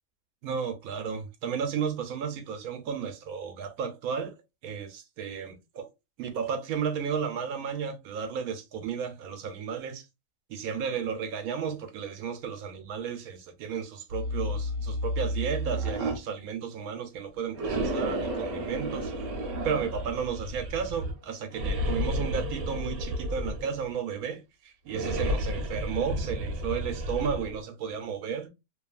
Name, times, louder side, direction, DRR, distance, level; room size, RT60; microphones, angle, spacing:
voice 1, 0.4-4.3 4.6-5.9 6.2-10.0 10.5-19.1 19.6-28.5, right 7 dB, 85° right, 1.1 m, -33 dB
sound 1, 14.1-16.2 17.5-21.1 21.5-23.9 24.9-27.6, equal, 65° right, 1.0 m, -32 dB
2.7 x 2.4 x 2.3 m
omnidirectional pair, 1.5 m